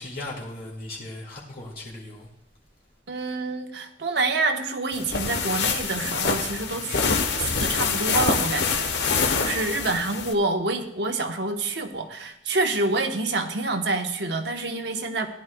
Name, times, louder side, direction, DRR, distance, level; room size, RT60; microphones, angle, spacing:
voice 1, 0.0-2.3, left 2 dB, 55° left, -4 dB, 2.0 m, -37 dB
voice 2, 3.1-15.3, right 2 dB, 75° right, 5 dB, 1.1 m, -27 dB
sound 1, 4.9-10.3, left 5 dB, 85° left, 1.0 m, -25 dB
17.0 x 11.5 x 2.3 m, 0.75 s
head